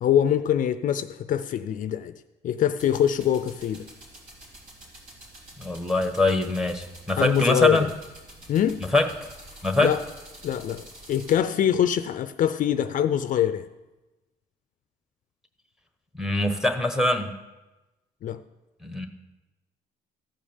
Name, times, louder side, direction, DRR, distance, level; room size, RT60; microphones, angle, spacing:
voice 1, 0.0-2.1 2.4-3.8 7.2-7.9 8.5-8.8 9.8-10.0 10.4-13.7 18.2-18.4, left 10 dB, 50° left, 0.5 m, -24 dB
sound 1, 2.8-11.4, right 1 dB, 55° right, 3.7 m, -47 dB
voice 2, 5.6-7.9 8.9-9.1 9.6-9.9 16.1-17.3 18.8-19.1, left 2 dB, 5° right, 1.2 m, -23 dB
14.5 x 5.0 x 7.2 m
cardioid pair, 110°, 17 cm